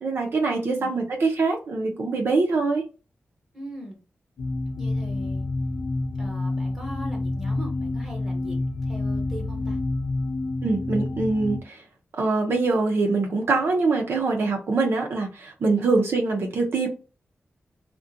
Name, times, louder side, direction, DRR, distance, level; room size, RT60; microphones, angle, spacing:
voice 1, 0.0-2.8 10.6-11.8 12.2-16.9, right 3 dB, 60° right, 0.5 m, -24 dB
voice 2, 0.6-0.9 3.5-4.0 4.8-5.4 6.2-9.8 15.8-15.9, equal, 5° right, 1.0 m, -40 dB
sound 1, 4.4-11.6, left 2 dB, 90° left, 0.5 m, -28 dB
2.4 x 2.1 x 2.5 m
wide cardioid pair, 160°, 4 cm